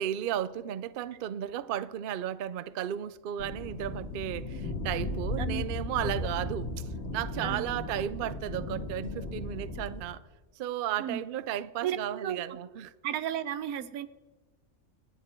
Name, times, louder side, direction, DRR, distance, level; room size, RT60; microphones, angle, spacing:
voice 1, 0.0-6.7 7.1-10.2 10.6-12.9, right 10 dB, 60° right, 0.6 m, -34 dB
sound 1, 3.4-10.0, left 2 dB, 50° left, 1.8 m, -36 dB
voice 2, 7.4-7.7 11.0-11.2 11.8-12.4 13.0-14.1, right 10 dB, 85° right, 1.2 m, -33 dB
26.5 x 9.6 x 4.5 m
omnidirectional pair, 1.5 m